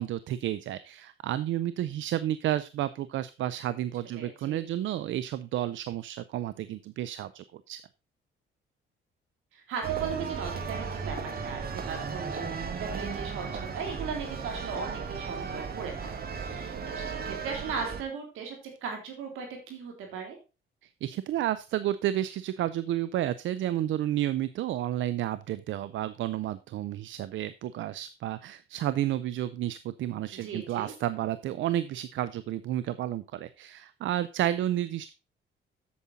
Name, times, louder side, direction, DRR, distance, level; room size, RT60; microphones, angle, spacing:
voice 1, 0.0-7.8 20.8-35.1, right 12 dB, 75° right, 15 dB, 0.5 m, -31 dB
voice 2, 4.1-4.6 9.5-11.2 11.4-12.5 12.8-16.1 16.4-20.4 30.4-30.9, right 5 dB, 90° right, 3 dB, 3.3 m, -38 dB
sound 1, 9.8-18.0, right 6 dB, 50° right, 1.6 m, -35 dB
8.5 x 7.2 x 4.0 m, 0.30 s
cardioid pair, 90°, 20 cm